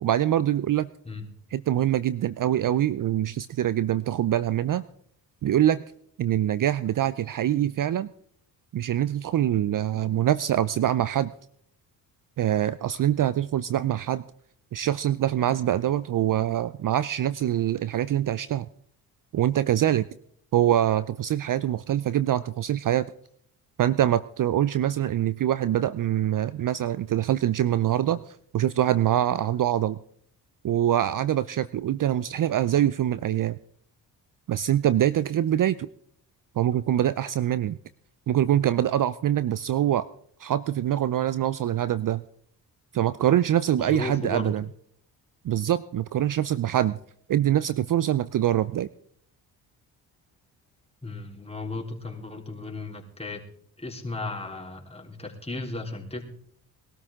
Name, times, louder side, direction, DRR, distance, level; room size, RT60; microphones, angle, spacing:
voice 1, 0.0-0.9 1.5-4.8 5.4-5.8 6.2-8.1 8.7-11.3 12.4-14.2 14.7-18.7 19.3-20.1 20.5-23.1 23.8-30.0 30.6-33.6 34.5-35.9 36.6-37.8 38.3-40.1 40.4-42.2 42.9-44.6 45.4-47.0 47.3-48.9, right 11 dB, 45° right, 17 dB, 0.6 m, -24 dB
voice 2, 43.8-44.5 51.0-53.4 53.8-56.2, left 2 dB, 15° left, 1 dB, 3.8 m, -35 dB
21.5 x 13.0 x 3.7 m, 0.66 s
supercardioid pair, 50°, 45 cm